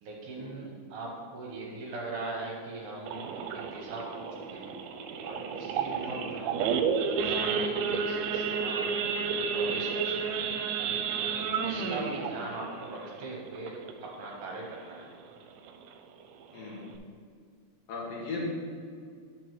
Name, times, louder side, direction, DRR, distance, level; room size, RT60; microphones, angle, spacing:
voice 1, 0.0-4.8 5.2-6.8 7.1-9.0 9.5-10.6 11.3-15.1, right 2 dB, 70° right, -2 dB, 2.4 m, -41 dB
Idling / Accelerating revving vroom / Sawing, 3.1-14.2 14.5-14.8 15.0-15.1 15.6-15.8 16.3-16.4 16.6-17.0, right 6 dB, 85° right, 2.5 m, -31 dB
voice 2, 8.9-9.3 11.8-12.1 16.5-16.9 17.9-18.5, left 3 dB, 65° left, -5 dB, 3.2 m, -39 dB
9.6 x 6.9 x 3.1 m, 2.2 s
omnidirectional pair, 4.4 m